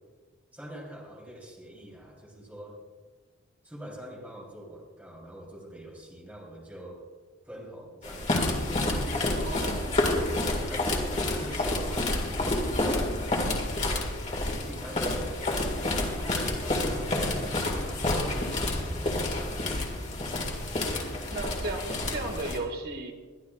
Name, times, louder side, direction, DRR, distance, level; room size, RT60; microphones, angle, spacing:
voice 1, 0.5-2.8 3.6-7.0 7.4-8.3 10.0-12.6 14.4-15.7 16.0-18.1 18.8-19.6, equal, 10° right, -3 dB, 3.4 m, -45 dB
sound 1, 8.0-22.6, left 1 dB, 35° left, 1.9 m, -29 dB
voice 2, 9.4-10.2 21.3-23.1, right 2 dB, 50° right, 3 dB, 1.7 m, -35 dB
22.0 x 11.5 x 2.4 m, 1.4 s
head